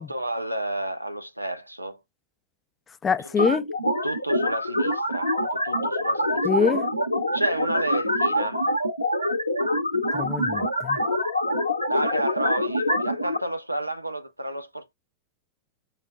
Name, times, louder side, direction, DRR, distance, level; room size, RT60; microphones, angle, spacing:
voice 1, 0.0-2.0 3.4-3.5 4.0-6.7 7.3-8.7 11.9-14.9, right 1 dB, 85° right, 0.5 m, -31 dB
voice 2, 3.0-3.7 6.4-6.8 10.1-11.0, left 6 dB, 20° left, 0.4 m, -24 dB
sound 1, 3.4-13.4, left 1 dB, 85° left, 0.7 m, -25 dB
5.6 x 2.2 x 2.3 m
figure-of-eight pair, 90°, 0 cm